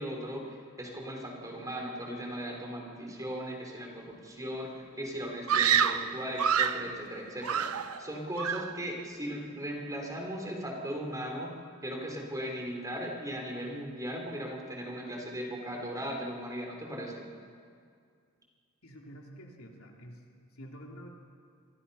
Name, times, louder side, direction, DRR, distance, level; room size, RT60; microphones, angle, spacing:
voice 1, 0.0-7.7 8.0-11.5 11.8-17.2, equal, 15° right, 0 dB, 4.0 m, -38 dB
Screaming, 5.5-6.9 7.4-8.1 8.4-8.8, right 8 dB, 80° right, 0.9 m, -27 dB
voice 2, 18.8-20.2 20.5-21.1, equal, 75° left, 0 dB, 3.4 m, -48 dB
28.0 x 23.5 x 5.7 m, 2.2 s
head